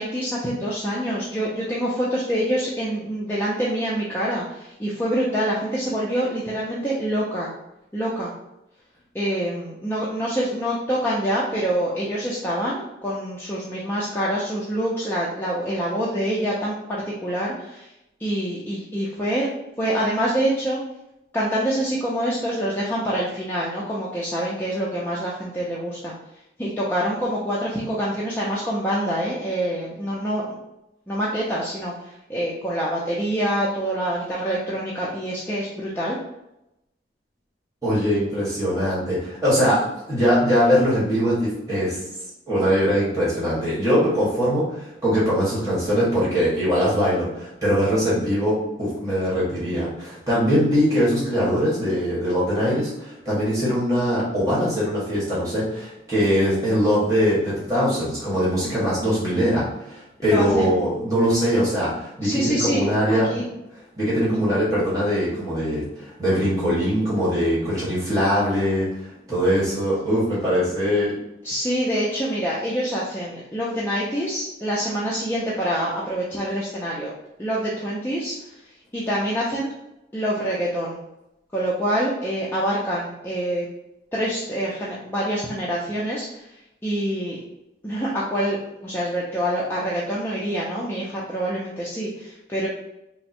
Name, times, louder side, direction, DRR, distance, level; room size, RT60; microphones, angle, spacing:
voice 1, 0.0-7.5 7.9-8.3 9.1-17.9 18.2-19.5 19.8-20.8 21.3-26.1 26.6-30.6 31.1-36.2 60.2-60.8 62.2-63.4 71.4-77.1 77.4-78.3 78.9-79.7 80.1-81.0 81.5-83.7 84.1-86.4 86.8-87.4 87.8-88.6 88.8-92.7, equal, 10° left, -7 dB, 0.5 m, -26 dB
voice 2, 37.8-39.8 40.1-42.0 42.5-63.4 64.0-68.9 69.3-71.1, equal, 20° right, -9 dB, 1.4 m, -22 dB
3.5 x 2.1 x 4.2 m, 0.87 s
head